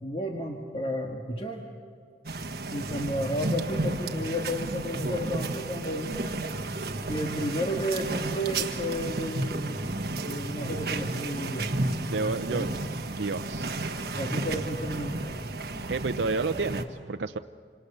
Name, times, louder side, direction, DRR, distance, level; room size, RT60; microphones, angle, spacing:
voice 1, 0.0-1.6 2.7-6.4 7.1-9.9 10.2-12.7 14.1-15.5, equal, 30° left, 1 dB, 1.7 m, -32 dB
sound 1, 2.3-16.8, right 2 dB, 60° right, 1.4 m, -32 dB
voice 2, 12.1-12.7 13.1-13.7 15.9-17.4, right 3 dB, 85° right, 7 dB, 0.6 m, -30 dB
27.0 x 26.5 x 6.8 m, 2.1 s
head